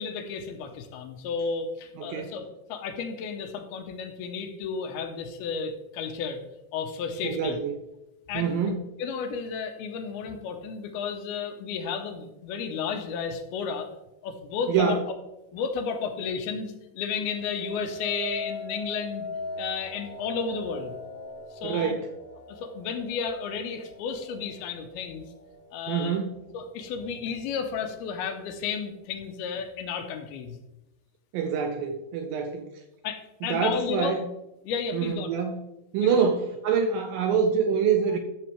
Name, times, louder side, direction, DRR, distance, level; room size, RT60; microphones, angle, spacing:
voice 1, 0.0-6.4 6.7-7.6 8.3-8.7 9.0-13.9 14.2-15.2 15.5-19.3 19.6-20.9 21.5-22.0 22.5-25.3 25.7-26.2 26.5-30.6 33.0-34.2 34.6-35.3 36.0-36.3, left 6 dB, 80° left, 6 dB, 2.6 m, -33 dB
voice 2, 2.0-2.3 7.2-7.8 8.3-8.8 14.7-15.0 21.6-22.1 25.9-26.3 31.3-32.7 33.4-34.3 34.9-35.6 35.9-38.2, right 6 dB, 80° right, 5 dB, 2.1 m, -26 dB
sound 1, 17.2-26.4 26.9-27.4, equal, 30° left, 4.7 m, -41 dB
13.0 x 7.0 x 3.4 m, 0.98 s
omnidirectional pair, 4.7 m